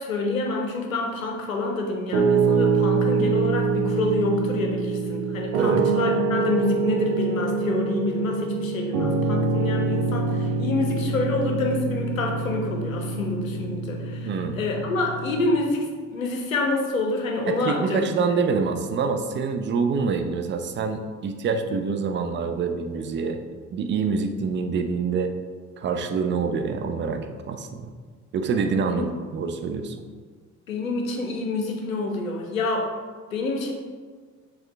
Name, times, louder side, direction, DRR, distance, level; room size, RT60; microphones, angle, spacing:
voice 1, 0.0-14.3 14.6-15.9 16.1-18.0 28.9-29.0 30.7-32.9 33.3-33.7, left 2 dB, 85° left, 2 dB, 0.6 m, -27 dB
Piano, 2.1-15.5, right 4 dB, 60° right, 0.7 m, -25 dB
voice 2, 14.2-14.6 17.5-23.4 23.7-25.4 25.8-27.9 28.3-30.0, right 5 dB, 30° right, 6 dB, 0.5 m, -26 dB
6.2 x 2.4 x 3.3 m, 1.5 s
figure-of-eight pair, 50°, 39 cm